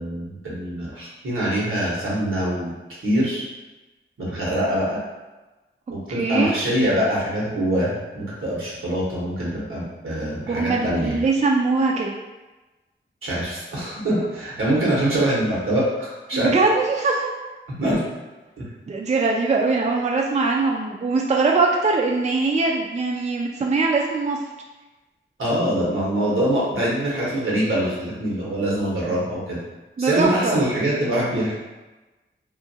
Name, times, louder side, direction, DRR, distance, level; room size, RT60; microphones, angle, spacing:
voice 1, 0.0-2.7 3.0-3.4 4.2-5.0 5.9-11.2 13.2-16.5 17.8-18.0 25.4-29.6 30.0-31.5, right 1 dB, 85° right, -6 dB, 1.1 m, -24 dB
voice 2, 6.1-6.5 10.5-12.1 16.3-17.3 18.9-24.4 25.7-25.9 30.0-30.6, right 3 dB, 35° right, -1 dB, 0.4 m, -21 dB
2.8 x 2.5 x 2.7 m, 1.1 s
cardioid pair, 50°, 21 cm